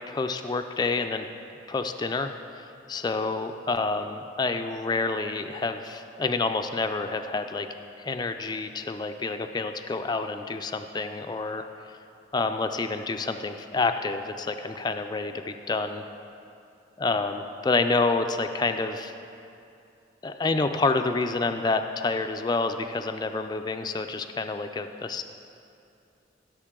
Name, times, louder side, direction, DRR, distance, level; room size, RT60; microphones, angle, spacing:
voice 1, 0.1-1.3 1.7-7.7 8.0-11.7 12.3-16.0 17.0-19.1 20.2-25.2, left 3 dB, 20° left, 7 dB, 0.3 m, -28 dB
14.5 x 7.1 x 3.7 m, 2.6 s
head